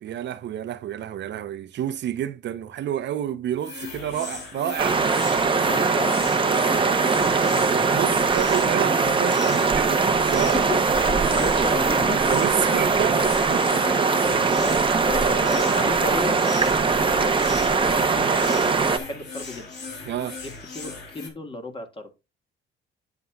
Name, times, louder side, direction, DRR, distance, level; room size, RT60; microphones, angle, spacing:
voice 1, 0.0-5.0 7.7-10.6 11.2-11.4 12.3-13.9 20.0-20.4, right 10 dB, 60° right, 0.8 m, -29 dB
sound 1, 3.6-21.3, left 4 dB, 55° left, 3.3 m, -37 dB
sound 2, 4.8-19.0, right 4 dB, 25° right, 0.9 m, -21 dB
voice 2, 5.2-7.6 7.9-8.6 10.2-12.2 13.9-14.0 14.3-19.7 20.4-22.1, left 2 dB, 25° left, 1.8 m, -35 dB
9.1 x 7.9 x 2.3 m
cardioid pair, 110°, 20 cm